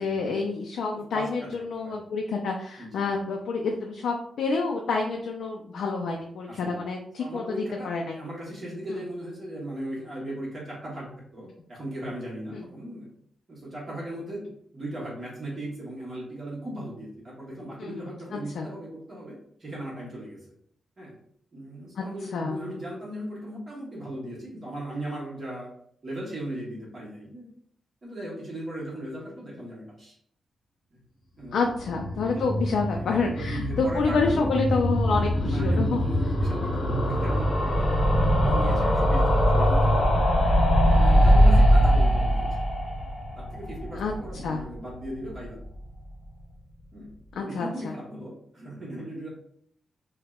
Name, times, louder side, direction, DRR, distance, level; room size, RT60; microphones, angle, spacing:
voice 1, 0.0-7.4 7.8-8.2 8.9-9.0 12.5-12.6 17.8-18.7 22.0-22.1 22.3-22.6 31.5-36.0 44.0-44.1 44.4-44.6 47.4-47.9, left 4 dB, 85° left, 1 dB, 0.3 m, -28 dB
voice 2, 0.9-2.0 2.8-3.1 6.5-6.8 7.2-13.1 13.5-20.4 21.0-21.1 21.5-25.7 26.0-27.5 28.0-30.1 30.9-31.0 31.4-31.7 32.2-32.5 33.0-34.6 35.4-38.0 38.4-40.1 40.8-42.5 43.3-45.6 46.9-49.3, right 1 dB, 35° right, -6 dB, 1.1 m, -38 dB
sound 1, 31.7-44.7 45.0-45.1 45.3-45.4 45.6-45.7, equal, 60° left, 0.7 m, -22 dB
3.4 x 2.1 x 2.3 m, 0.67 s
wide cardioid pair, 120°, 0 cm